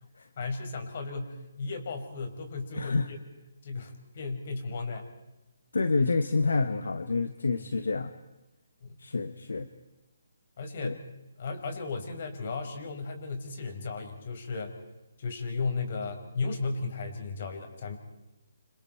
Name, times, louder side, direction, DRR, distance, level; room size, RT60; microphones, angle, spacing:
voice 1, 0.4-3.2 3.6-5.1 7.5-7.7 8.8-9.0 10.6-11.0 11.4-14.8 15.2-17.9, left 4 dB, 50° left, 5 dB, 5.4 m, -35 dB
voice 2, 2.7-3.1 5.7-8.1 9.0-9.7 10.8-11.0, left 3 dB, 75° left, 10 dB, 1.3 m, -28 dB
29.5 x 26.5 x 4.6 m, 1.0 s
figure-of-eight pair, 145°, 0 cm